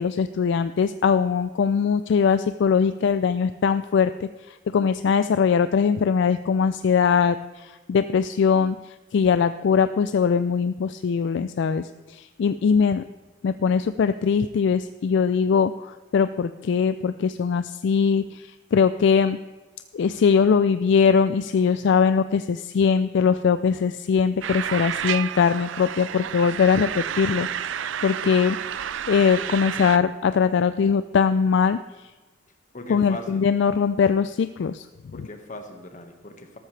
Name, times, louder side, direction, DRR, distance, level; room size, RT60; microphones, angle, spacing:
voice 1, 0.0-13.0 13.4-19.4 19.9-27.5 28.0-28.6 29.1-31.8 32.9-34.9, left 6 dB, 65° left, 12 dB, 0.3 m, -21 dB
sound 1, 24.4-30.0, right 9 dB, 75° right, 0.4 m, -30 dB
voice 2, 32.7-33.5 35.1-36.6, left 1 dB, 45° left, 4 dB, 1.5 m, -39 dB
13.5 x 13.0 x 3.3 m, 1.3 s
head